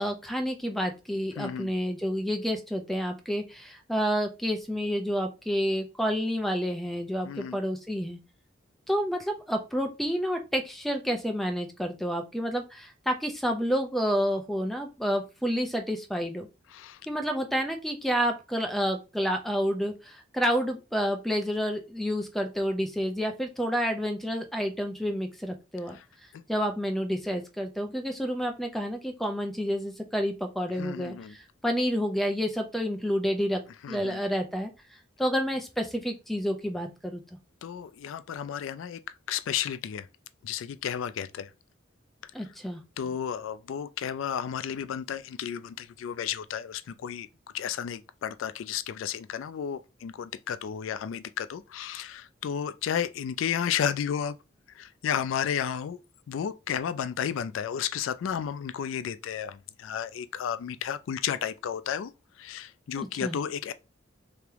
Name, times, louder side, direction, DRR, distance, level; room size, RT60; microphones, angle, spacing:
voice 1, 0.0-8.2 8.9-16.5 17.1-26.0 26.5-33.6 33.9-34.7 35.2-37.2 42.3-42.8 62.9-63.4, equal, ahead, 0.5 m, -29 dB
voice 2, 1.4-1.7 7.2-7.6 16.7-17.0 25.9-26.0 26.3-26.4 30.8-31.3 33.8-34.2 37.6-39.0 39.3-40.1 40.4-41.5 43.0-47.3 47.5-54.4 54.8-56.0 56.3-62.1 62.4-63.7, left 8 dB, 80° left, 0.3 m, -32 dB
3.3 x 2.9 x 3.5 m
head